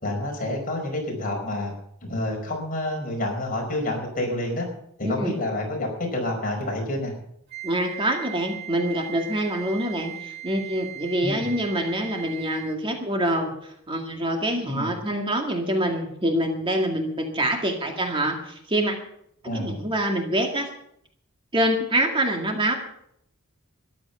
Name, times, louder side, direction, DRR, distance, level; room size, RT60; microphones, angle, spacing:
voice 1, 0.0-1.7 2.0-4.6 5.0-7.1 11.2-11.5 14.7-14.9 19.4-19.8, left 1 dB, 40° left, 1 dB, 5.3 m, -28 dB
voice 2, 5.0-5.3 7.6-19.0 19.5-20.7 21.5-22.8, right 1 dB, 25° right, 3 dB, 2.0 m, -25 dB
Wind instrument woodwind instrument, 7.5-12.9, right 12 dB, 50° right, 1.9 m, -39 dB
13.5 x 11.5 x 7.0 m, 0.72 s
head